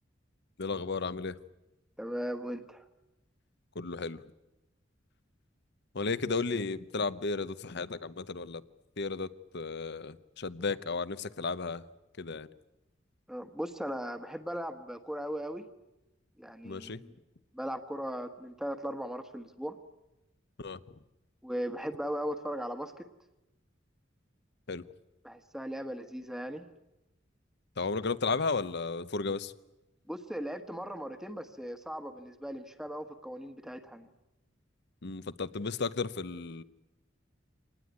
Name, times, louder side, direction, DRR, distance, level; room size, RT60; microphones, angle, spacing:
voice 1, 0.6-1.4 3.7-4.2 5.9-8.6 9.0-11.8 12.2-12.5 16.6-17.0 20.6-20.8 24.7-24.8 27.8-29.5 35.0-36.6, left 4 dB, 60° left, 15 dB, 1.0 m, -34 dB
voice 2, 2.0-2.8 13.3-15.7 16.4-17.1 17.5-19.8 21.4-23.1 25.2-26.6 30.1-34.1, equal, 5° right, 8 dB, 1.4 m, -38 dB
26.0 x 19.5 x 9.6 m, 0.96 s
head